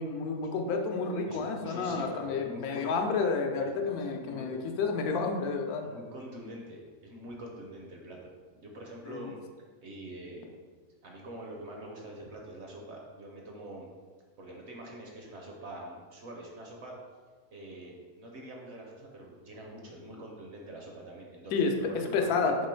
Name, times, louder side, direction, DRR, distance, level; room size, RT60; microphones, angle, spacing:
voice 1, 0.0-5.9 9.1-9.3 21.5-21.7 22.1-22.6, left 4 dB, 85° left, 3 dB, 1.1 m, -30 dB
voice 2, 1.3-3.0 3.6-3.7 4.2-4.6 5.8-9.4 9.8-10.5 11.0-13.9 14.4-16.9 17.5-22.3, right 1 dB, 60° right, 0 dB, 0.8 m, -45 dB
3.7 x 3.0 x 4.3 m, 1.5 s
omnidirectional pair, 1.5 m